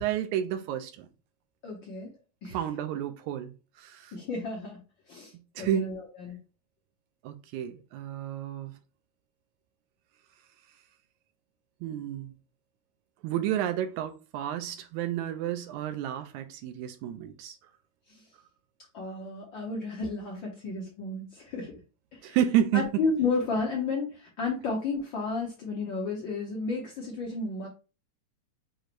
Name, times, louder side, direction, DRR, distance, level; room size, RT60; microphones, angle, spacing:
voice 1, 0.0-1.1 2.5-3.5 3.8-4.1 5.6-5.9 7.2-8.7 11.8-12.3 13.2-17.6 22.2-22.9, right 10 dB, 80° right, 1.9 m, -30 dB
voice 2, 1.6-2.6 4.1-4.8 5.1-6.4 18.1-18.2 18.9-21.7 22.2-22.4 22.7-27.7, left 3 dB, 75° left, 1.1 m, -32 dB
6.4 x 3.0 x 2.5 m
omnidirectional pair, 3.5 m